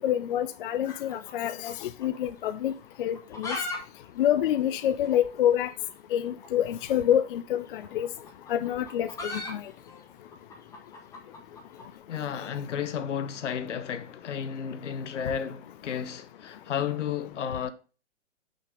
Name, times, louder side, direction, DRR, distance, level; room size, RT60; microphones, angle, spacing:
voice 1, 0.0-2.7 3.0-3.6 4.2-5.7 6.1-8.1 8.5-9.6, left 11 dB, 50° left, 0.4 m, -27 dB
sound 1, 0.8-2.2 2.4-2.5 3.1-3.8 4.0-4.1 4.4-4.5 5.1-5.2 6.4-6.5 7.7-11.9, left 2 dB, 10° left, 0.8 m, -38 dB
voice 2, 12.1-17.7, left 8 dB, 80° left, 1.0 m, -32 dB
5.8 x 5.2 x 3.5 m
hypercardioid pair, 145°, 36 cm